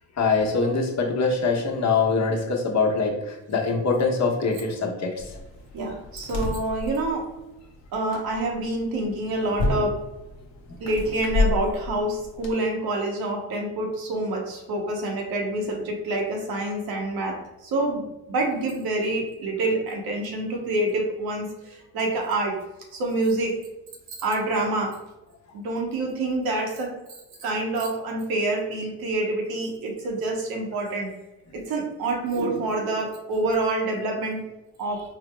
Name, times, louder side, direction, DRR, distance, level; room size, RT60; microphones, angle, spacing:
voice 1, 0.2-5.3, left 4 dB, 50° left, 1 dB, 0.9 m, -23 dB
sound 1, 5.2-12.5, left 3 dB, 80° left, 1.0 m, -31 dB
voice 2, 5.7-7.3 7.9-10.0 10.8-22.6 22.9-23.6 24.1-25.0 25.5-27.0 27.4-31.1 31.5-34.4 34.8-35.0, right 2 dB, 85° right, 1 dB, 0.9 m, -27 dB
3.9 x 2.0 x 3.2 m, 0.99 s
cardioid pair, 75°, 36 cm